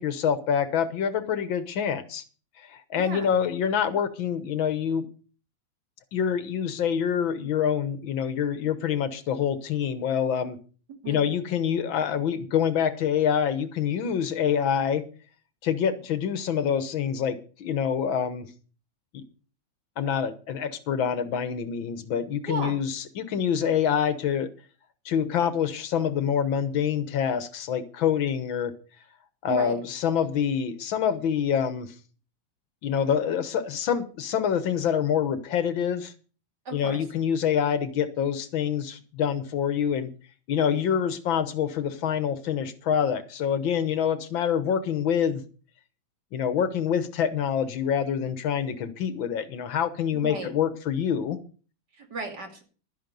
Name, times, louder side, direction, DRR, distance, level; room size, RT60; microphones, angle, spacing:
voice 1, 0.0-2.2 2.6-5.1 6.1-10.6 11.1-15.0 15.6-18.5 19.1-19.2 20.0-24.5 25.1-28.7 29.4-31.9 32.8-36.1 36.7-40.1 40.5-45.4 46.3-51.4, left 8 dB, 80° left, 11 dB, 1.9 m, -26 dB
voice 2, 3.0-3.3 10.9-11.2 22.5-22.8 29.5-29.8 36.6-37.0 50.1-50.5 51.9-52.6, right 3 dB, 55° right, 3 dB, 3.3 m, -35 dB
12.0 x 10.0 x 5.3 m, 0.38 s
omnidirectional pair, 2.1 m